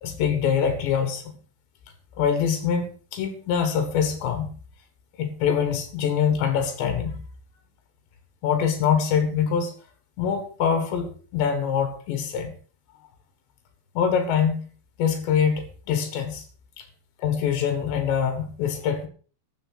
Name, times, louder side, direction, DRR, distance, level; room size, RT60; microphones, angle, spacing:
voice 1, 0.0-1.4 2.2-4.5 5.2-7.2 8.4-9.8 10.2-12.5 14.0-14.7 15.0-16.5 16.8-16.9 17.2-19.1, left 7 dB, 90° left, 7 dB, 3.9 m, -24 dB
14.5 x 7.3 x 5.8 m, 0.40 s
omnidirectional pair, 4.9 m